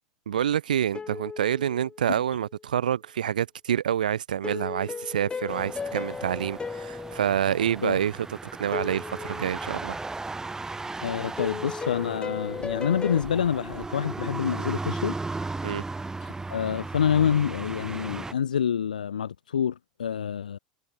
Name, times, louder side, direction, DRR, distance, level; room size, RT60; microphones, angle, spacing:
voice 1, 0.3-10.0 15.6-15.8, right 9 dB, 75° right, 0.5 m, -27 dB
sound 1, 0.9-2.5 4.4-8.1 8.7-10.2 11.4-13.2, left 5 dB, 20° left, 1.2 m, -36 dB
sound 2, 5.5-18.3, right 3 dB, 10° right, 1.8 m, -36 dB
voice 2, 11.0-15.1 16.2-20.6, left 8 dB, 80° left, 0.4 m, -27 dB
figure-of-eight pair, 80°, 4 cm